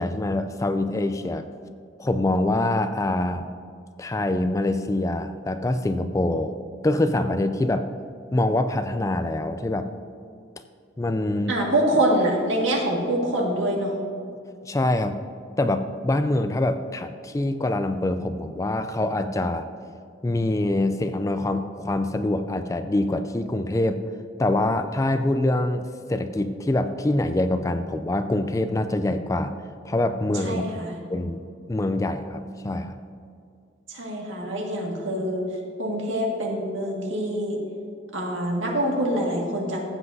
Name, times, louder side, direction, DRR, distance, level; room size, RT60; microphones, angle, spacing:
voice 1, 0.0-1.5 2.0-3.5 4.0-6.6 6.8-7.9 8.3-9.9 11.0-11.6 14.7-15.2 15.6-19.7 20.2-24.0 24.4-29.5 29.8-30.6 31.1-31.4 31.7-33.0, left 1 dB, 15° left, 9 dB, 0.3 m, -25 dB
voice 2, 11.5-14.0 30.4-31.0 33.9-35.5 35.8-37.6 38.1-39.8, right 1 dB, 85° right, -1 dB, 1.9 m, -25 dB
15.0 x 7.6 x 2.7 m, 2.3 s
head